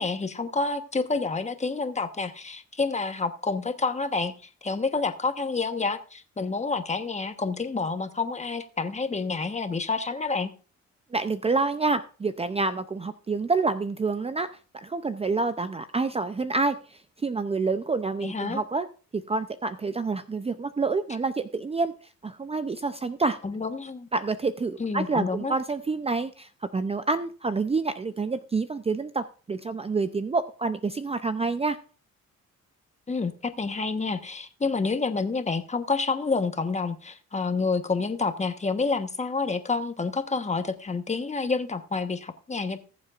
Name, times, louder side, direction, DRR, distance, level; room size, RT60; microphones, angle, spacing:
voice 1, 0.0-4.3 4.6-10.5 18.2-18.6 23.4-24.1 24.8-25.5 33.1-42.8, left 4 dB, 25° left, 8 dB, 1.2 m, -28 dB
voice 2, 11.1-14.5 14.7-18.9 19.1-21.9 22.2-23.4 24.1-31.8, right 3 dB, 20° right, 11 dB, 0.5 m, -28 dB
19.5 x 7.4 x 2.5 m, 0.38 s
cardioid pair, 90°, 30 cm